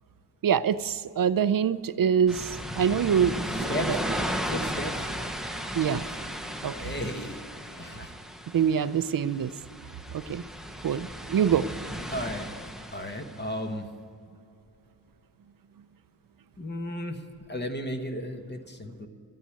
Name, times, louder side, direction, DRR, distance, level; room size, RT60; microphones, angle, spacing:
voice 1, 0.4-4.0 5.7-6.0 6.6-6.9 8.5-9.5 10.1-10.4 10.8-11.7, right 8 dB, 55° right, 15 dB, 0.5 m, -25 dB
sound 1, 2.3-13.4, equal, ahead, 0.7 m, -35 dB
voice 2, 3.6-4.0 4.5-5.1 6.8-7.4 7.7-8.1 12.1-12.5 12.9-13.9 16.6-17.2 17.5-19.1, equal, 25° left, 5 dB, 1.1 m, -34 dB
13.5 x 9.2 x 8.3 m, 2.5 s
wide cardioid pair, 145°, 42 cm